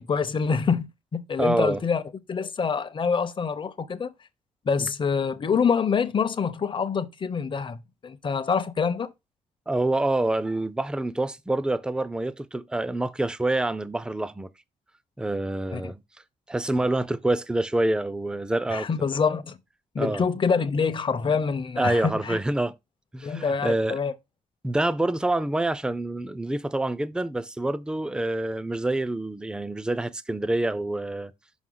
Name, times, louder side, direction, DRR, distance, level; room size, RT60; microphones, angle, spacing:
voice 1, 0.0-2.0 2.3-4.1 4.6-9.1 15.7-15.9 18.7-19.6 19.9-22.4 23.2-24.1, left 5 dB, 35° left, 0.8 m, -26 dB
voice 2, 1.4-1.8 4.8-4.9 9.7-14.5 15.2-16.0 16.5-18.9 20.0-20.2 21.8-22.7 23.1-24.0 24.6-31.3, right 2 dB, 5° right, 0.5 m, -26 dB
6.2 x 5.3 x 3.8 m
cardioid pair, 90°, 14 cm